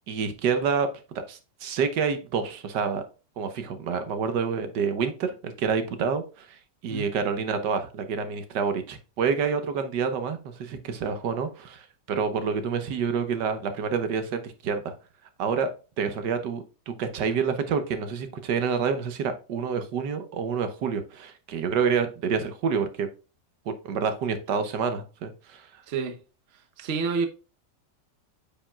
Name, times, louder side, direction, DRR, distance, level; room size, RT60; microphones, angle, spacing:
voice 1, 0.1-0.9 1.3-3.0 3.4-14.9 15.4-15.7 16.0-23.1 23.8-25.8, right 6 dB, 85° right, 1.6 m, -28 dB
voice 2, 25.9-26.2 26.5-27.3, right 5 dB, 45° right, 1.0 m, -29 dB
8.7 x 5.2 x 2.3 m
omnidirectional pair, 1.8 m